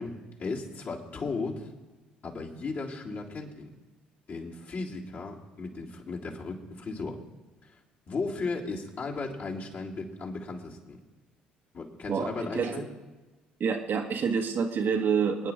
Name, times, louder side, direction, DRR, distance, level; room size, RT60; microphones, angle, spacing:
voice 1, 0.0-1.7 2.2-3.7 4.3-7.2 7.6-7.7 8.1-11.0 11.7-12.9, left 3 dB, 45° left, -4 dB, 3.3 m, -36 dB
voice 2, 12.1-12.8 13.6-15.5, right 6 dB, 50° right, 3 dB, 1.5 m, -28 dB
27.0 x 9.8 x 3.7 m, 1.2 s
hypercardioid pair, 50°, 4 cm